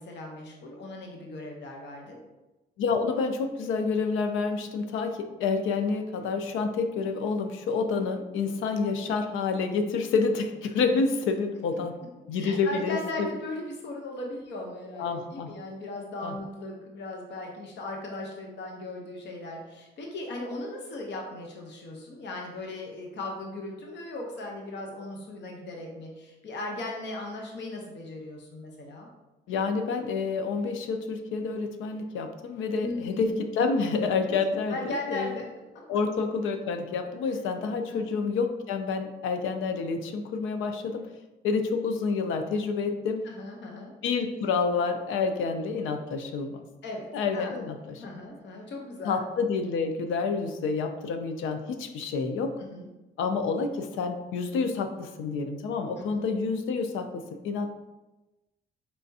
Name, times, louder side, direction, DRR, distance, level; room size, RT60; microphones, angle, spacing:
voice 1, 0.0-2.2 12.3-29.1 32.8-33.4 34.3-34.4 34.7-35.4 37.9-38.3 43.2-43.9 46.8-47.7 48.0-49.2 52.6-52.9 56.0-56.2, left 2 dB, 65° left, 0 dB, 0.8 m, -38 dB
voice 2, 2.8-11.9 12.3-13.3 15.0-15.5 16.2-16.4 29.5-35.4 35.9-41.1 41.4-43.2 44.0-46.6 47.1-48.0 49.1-52.5 53.2-57.7, left 4 dB, 85° left, 7 dB, 0.5 m, -28 dB
4.3 x 3.3 x 2.7 m, 1.1 s
cardioid pair, 90°, 20 cm